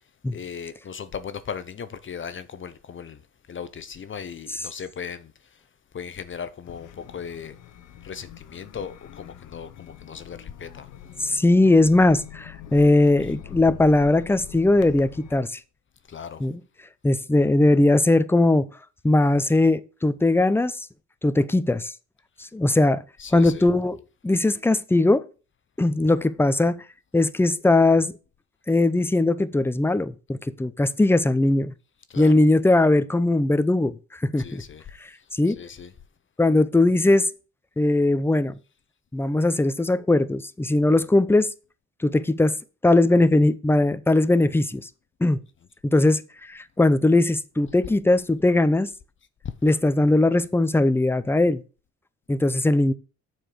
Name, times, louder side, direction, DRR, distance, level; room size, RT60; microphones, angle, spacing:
voice 1, 0.3-3.2 3.5-5.3 5.9-7.6 8.0-10.9 16.1-16.4 23.2-23.6 32.1-32.3 34.4-34.8 35.6-35.9 49.4-49.5, left 7 dB, 40° left, 0.8 m, -37 dB
sound 1, 6.6-15.4, left 10 dB, 85° left, 1.0 m, -43 dB
voice 2, 11.2-15.6 16.4-16.6 17.0-18.7 19.0-20.9 21.2-21.9 22.4-23.0 23.3-25.2 25.8-26.8 27.1-28.1 28.7-31.7 32.2-34.6 35.3-35.6 36.4-37.3 37.8-38.5 39.1-41.5 42.0-42.5 42.8-44.9 45.2-45.4 45.8-48.9 49.6-51.6 52.3-52.9, left 2 dB, 10° left, 0.6 m, -20 dB
7.6 x 4.6 x 6.7 m
cardioid pair, 90°, 30 cm